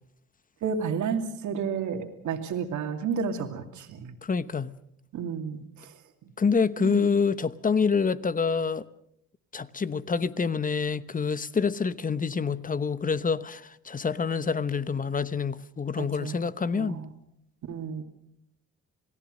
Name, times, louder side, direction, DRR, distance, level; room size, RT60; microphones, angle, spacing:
voice 1, 0.6-4.1 5.1-5.9 6.8-7.1 16.0-16.4 16.7-17.1 17.7-18.0, right 6 dB, 75° right, 2.7 m, -31 dB
voice 2, 4.2-4.7 6.4-8.8 9.5-17.0, left 5 dB, 25° left, 1.0 m, -27 dB
28.0 x 18.0 x 6.5 m
cardioid pair, 90°, 30 cm